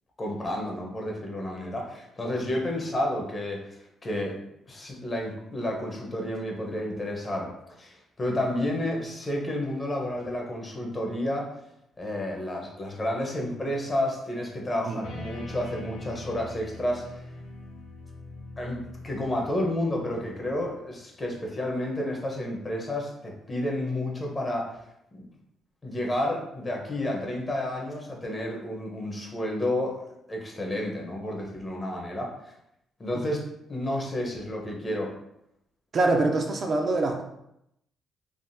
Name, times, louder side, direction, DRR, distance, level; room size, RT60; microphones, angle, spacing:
voice 1, 0.2-3.6 4.0-4.4 4.7-11.5 12.0-17.3 18.6-24.7 25.1-25.2 25.8-32.5 33.0-33.4 33.7-35.1, left 1 dB, 30° left, 0 dB, 0.8 m, -31 dB
sound 1, 15.0-20.7, left 2 dB, 85° left, 0.6 m, -43 dB
voice 2, 35.9-37.2, right 2 dB, 45° right, 2 dB, 0.4 m, -24 dB
3.4 x 2.1 x 2.6 m, 0.79 s
cardioid pair, 90°, 0 cm